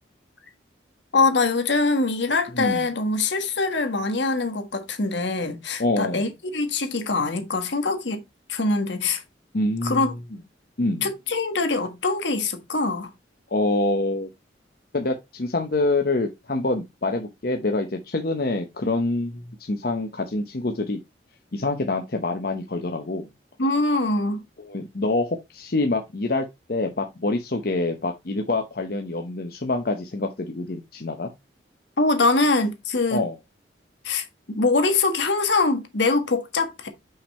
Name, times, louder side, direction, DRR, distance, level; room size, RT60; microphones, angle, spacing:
voice 1, 1.1-8.2 8.5-9.2 9.8-10.1 11.0-13.1 23.6-24.4 32.0-33.2 34.0-36.9, left 3 dB, 75° left, 1.5 m, -23 dB
voice 2, 2.5-2.9 5.8-6.3 9.5-10.2 10.8-11.1 13.5-14.3 14.9-21.0 21.5-23.3 24.6-31.3 33.1-33.4, left 2 dB, 55° left, 0.9 m, -26 dB
5.6 x 5.4 x 4.2 m
head